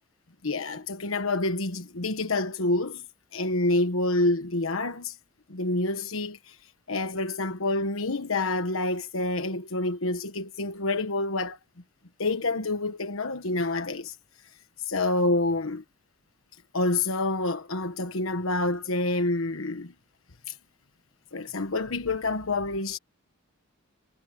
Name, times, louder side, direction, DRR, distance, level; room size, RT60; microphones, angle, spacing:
voice 1, 0.4-3.0 3.3-5.2 5.5-6.6 6.9-11.6 12.2-14.2 14.8-15.8 16.7-19.9 20.5-20.6 21.3-23.0, left 2 dB, 80° left, 1.3 m, -27 dB
head